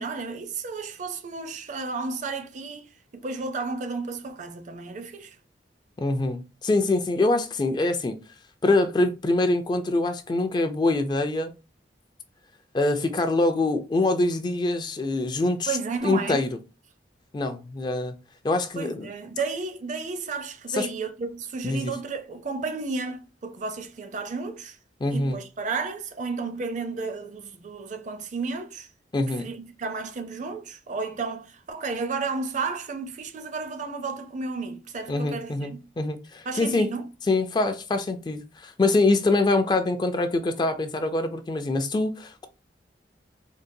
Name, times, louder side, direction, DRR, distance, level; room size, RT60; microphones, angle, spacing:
voice 1, 0.0-5.4 15.7-16.4 18.8-24.8 25.1-28.9 29.4-35.8 36.5-37.1, right 4 dB, 45° right, 0.5 m, -32 dB
voice 2, 6.0-8.2 8.6-11.5 12.7-15.8 16.0-16.6 17.3-18.1 18.4-19.1 20.7-20.9 21.6-21.9 25.0-25.4 29.1-29.5 35.1-36.9 37.3-42.5, left 2 dB, 25° left, 0.3 m, -24 dB
3.7 x 2.2 x 2.6 m
head